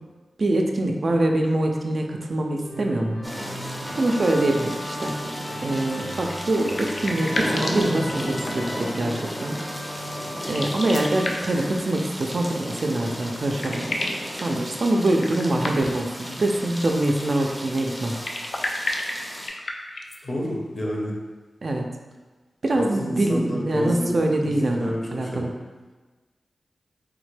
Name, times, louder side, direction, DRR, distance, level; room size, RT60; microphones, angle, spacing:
voice 1, 0.4-3.2 3.9-5.4 5.6-9.6 10.5-13.9 14.4-18.2 21.6-21.8 22.6-25.5, right 1 dB, 60° right, 2 dB, 0.3 m, -24 dB
Musical instrument, 2.6-11.8, equal, 85° left, 0.8 m, -37 dB
sound 1, 3.2-19.5, equal, 5° left, 0.5 m, -34 dB
sound 2, 6.2-8.8 10.4-11.7 13.0-13.1 13.3-14.3 15.2-16.1 18.1-20.2, left 2 dB, 65° left, 0.3 m, -32 dB
voice 2, 20.2-21.2 22.8-25.4, equal, 40° left, -2 dB, 0.7 m, -29 dB
3.4 x 2.1 x 3.2 m, 1.3 s
cardioid pair, 60°, 0 cm